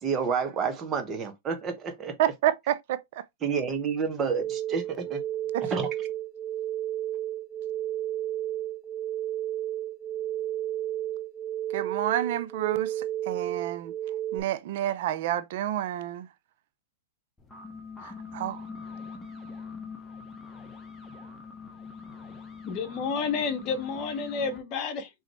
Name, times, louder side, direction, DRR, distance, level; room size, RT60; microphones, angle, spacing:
voice 1, 0.0-2.2 3.4-5.2 5.7-5.9, right 6 dB, 25° right, 1.1 m, -29 dB
voice 2, 2.2-3.2 5.5-5.7 11.7-13.9 14.3-16.3 18.0-18.6, right 12 dB, 60° right, 0.5 m, -29 dB
sound 1, 4.4-14.4, right 12 dB, 10° right, 0.5 m, -32 dB
sound 2, 17.4-24.6, left 5 dB, 15° left, 1.1 m, -43 dB
voice 3, 22.6-25.1, left 5 dB, 40° left, 1.2 m, -30 dB
3.8 x 3.1 x 3.1 m
hypercardioid pair, 115°, 0 cm